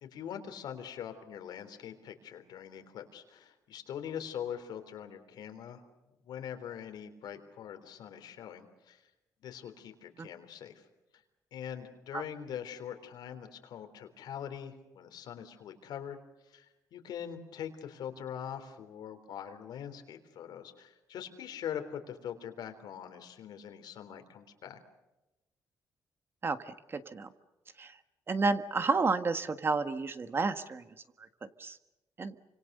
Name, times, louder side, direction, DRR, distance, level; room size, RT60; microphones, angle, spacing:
voice 1, 0.0-5.8 6.2-9.0 9.4-10.8 11.5-16.2 16.4-24.8, left 9 dB, 80° left, 7 dB, 3.6 m, -43 dB
voice 2, 26.4-27.3 27.8-27.9 28.3-30.8 31.6-31.8 32.2-32.3, right 4 dB, 35° right, 10 dB, 1.5 m, -31 dB
29.0 x 26.0 x 6.7 m, 1.0 s
cardioid pair, 110°, 7 cm